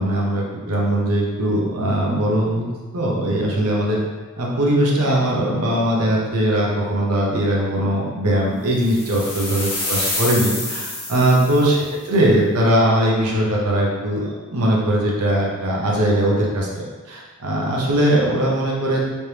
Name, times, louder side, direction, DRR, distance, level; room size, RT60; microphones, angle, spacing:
voice 1, 0.0-2.7 2.9-4.0 4.4-19.0, right 1 dB, 90° right, -3 dB, 0.8 m, -20 dB
sound 1, 8.8-11.8, left 2 dB, 25° left, 1.1 m, -27 dB
3.3 x 3.3 x 2.9 m, 1.4 s
head